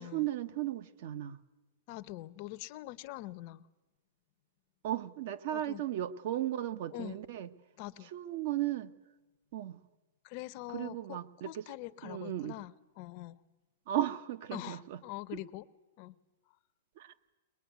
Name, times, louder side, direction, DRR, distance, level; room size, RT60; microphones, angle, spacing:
voice 1, 0.0-1.4 4.8-7.5 8.1-8.9 9.5-9.8 10.7-11.7 12.0-12.5 13.9-15.0 17.0-17.1, right 12 dB, 45° right, 13 dB, 1.2 m, -35 dB
voice 2, 1.9-3.7 5.5-5.8 6.9-7.2 7.8-8.1 10.2-11.2 11.4-13.4 14.5-15.6 16.0-16.2, left 17 dB, 35° left, 13 dB, 0.8 m, -44 dB
22.5 x 21.0 x 9.4 m, 1.1 s
supercardioid pair, 170°, 0 cm